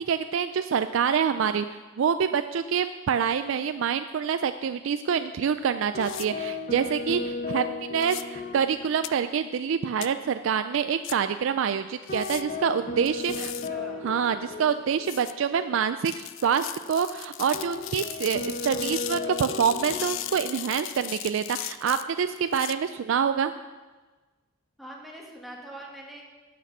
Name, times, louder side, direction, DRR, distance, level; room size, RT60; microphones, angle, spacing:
voice 1, 0.1-13.5 14.0-23.5, right 7 dB, 70° right, 10 dB, 0.4 m, -26 dB
sound 1, 5.9-9.5 9.8-9.9 12.1-15.4 17.5-20.8, left 3 dB, 40° left, 1.0 m, -35 dB
sound 2, 6.0-6.3 8.0-8.2 9.0-9.1 10.0-10.1 11.0-11.1 12.1-12.4 13.1-13.7 15.0-15.3 16.0-22.7, left 15 dB, 65° left, 0.4 m, -37 dB
voice 2, 13.4-14.1 24.8-26.2, right 1 dB, ahead, -2 dB, 1.8 m, -43 dB
10.5 x 8.3 x 6.0 m, 1.3 s
head